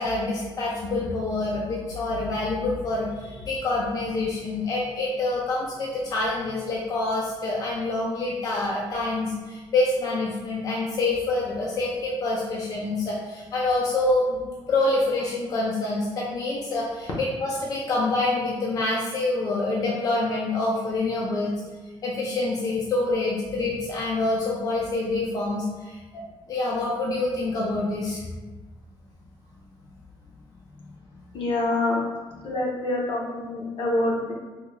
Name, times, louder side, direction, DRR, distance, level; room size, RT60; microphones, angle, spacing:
voice 1, 0.0-21.5 22.0-26.2 26.5-28.2, left 2 dB, 40° left, -4 dB, 0.4 m, -26 dB
voice 2, 31.3-32.0 32.4-34.3, left 2 dB, 65° left, -2 dB, 0.7 m, -26 dB
3.5 x 2.3 x 3.0 m, 1.3 s
wide cardioid pair, 175°, 9 cm